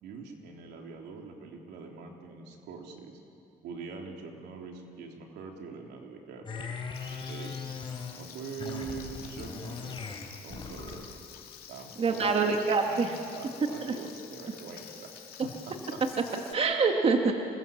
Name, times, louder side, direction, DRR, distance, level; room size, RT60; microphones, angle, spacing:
voice 1, 0.0-3.1 3.6-6.7 7.3-7.5 8.1-10.1 10.4-11.0 11.7-12.6 12.9-16.0, right 4 dB, 80° right, 1 dB, 3.6 m, -43 dB
sound 1, 6.5-8.2 8.6-11.2, left 5 dB, 30° left, 3.8 m, -39 dB
Frying (food), 6.9-16.5, left 8 dB, 60° left, 3.0 m, -49 dB
voice 2, 12.0-13.1 13.8-13.9 16.5-17.3, right 4 dB, 35° right, 3 dB, 1.9 m, -25 dB
27.5 x 21.0 x 7.3 m, 2.6 s
cardioid pair, 110°, 17 cm